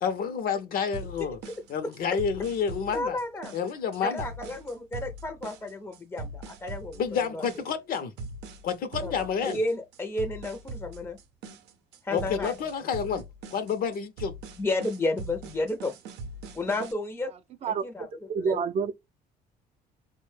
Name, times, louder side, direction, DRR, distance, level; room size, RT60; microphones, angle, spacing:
voice 1, 0.0-1.4 1.7-3.2 3.5-4.2 7.0-8.1 8.6-9.6 12.1-13.2 13.5-14.3, left 7 dB, 60° left, 0.6 m, -29 dB
sound 1, 0.9-16.9, right 2 dB, 85° right, 0.6 m, -41 dB
voice 2, 2.9-3.5 4.0-7.0 7.3-7.4 9.0-11.2 12.0-12.5 14.6-15.9 16.5-17.3 17.8-18.1 18.4-18.6, left 2 dB, 15° left, 0.5 m, -32 dB
voice 3, 18.3-18.9, right 6 dB, 40° right, 0.5 m, -27 dB
3.9 x 2.1 x 3.2 m
cardioid pair, 110°, 17 cm